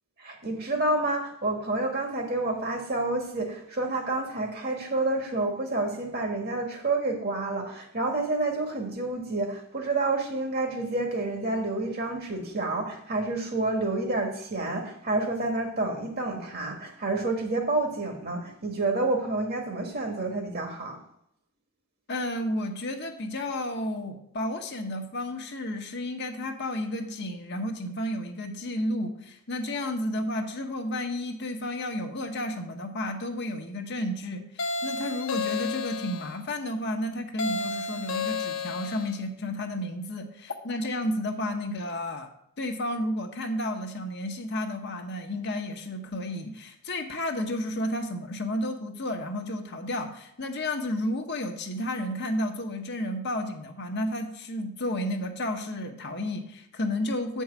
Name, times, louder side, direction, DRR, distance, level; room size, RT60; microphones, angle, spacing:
voice 1, 0.2-21.0, right 2 dB, 45° right, 3 dB, 1.7 m, -29 dB
voice 2, 22.1-42.3 42.6-57.4, left 1 dB, 55° left, 4 dB, 1.0 m, -32 dB
sound 1, 34.6-36.3 37.4-39.2, left 4 dB, 75° left, 0.8 m, -32 dB
7.8 x 4.6 x 7.2 m, 0.73 s
head